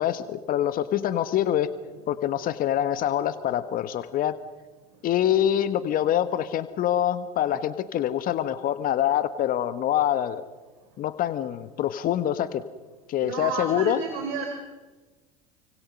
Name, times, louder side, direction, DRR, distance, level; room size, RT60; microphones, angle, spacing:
voice 1, 0.0-1.7 2.1-4.4 5.0-10.4 11.0-12.6 13.1-14.0, left 11 dB, 45° left, 12 dB, 1.4 m, -25 dB
voice 2, 13.2-14.5, right 5 dB, 65° right, 4 dB, 4.4 m, -31 dB
29.0 x 25.5 x 5.5 m, 1.2 s
hypercardioid pair, 75°, 20 cm